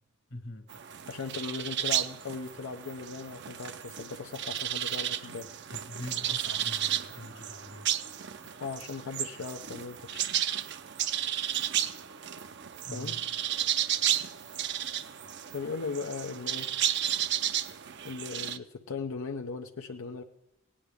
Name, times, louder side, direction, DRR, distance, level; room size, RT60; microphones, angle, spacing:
voice 1, 0.3-0.7 5.7-7.9 12.8-13.2, left 1 dB, 65° left, 7 dB, 1.5 m, -43 dB
sound 1, 0.7-18.6, right 11 dB, 55° right, 0.6 m, -33 dB
voice 2, 1.1-5.5 8.6-10.3 12.9-13.1 15.5-16.7 18.0-20.2, left 4 dB, 90° left, 3 dB, 0.6 m, -38 dB
17.5 x 9.8 x 3.5 m, 0.89 s
head